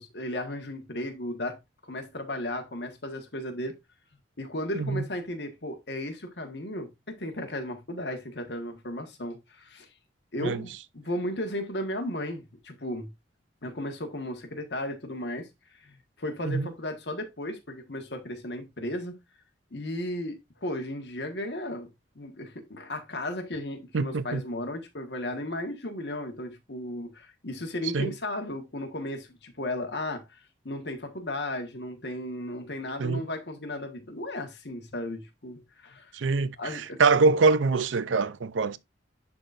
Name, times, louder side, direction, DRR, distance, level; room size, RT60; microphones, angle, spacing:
voice 1, 0.0-3.8 4.4-9.9 10.3-13.1 13.6-15.5 15.8-19.2 19.7-21.9 22.1-30.4 30.6-36.3 36.6-37.0, left 1 dB, 60° left, 1.5 m, -35 dB
voice 2, 23.9-24.4 27.9-28.1 33.0-33.2 36.1-38.8, right 4 dB, 85° right, 0.5 m, -24 dB
11.5 x 4.0 x 2.5 m
head